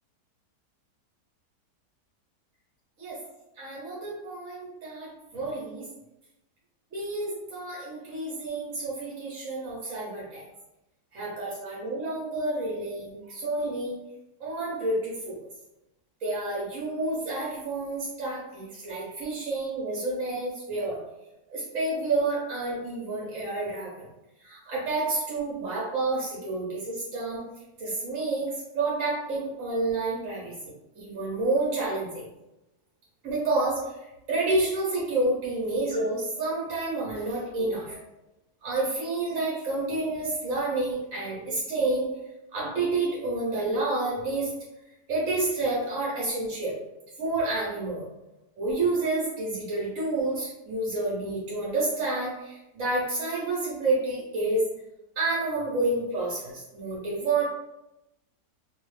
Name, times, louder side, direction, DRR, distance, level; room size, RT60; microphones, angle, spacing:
voice 1, 3.6-5.9 6.9-10.4 11.1-13.9 14.4-15.3 16.2-21.0 21.5-24.0 24.4-27.4 27.8-28.5 28.7-30.5 30.9-32.2 33.2-33.8 34.3-38.0 38.6-42.1 42.5-44.5 45.1-46.7 47.2-48.0 48.6-54.6 55.2-57.4, right 2 dB, 60° right, -5 dB, 1.0 m, -29 dB
2.6 x 2.4 x 3.1 m, 0.92 s
omnidirectional pair, 1.8 m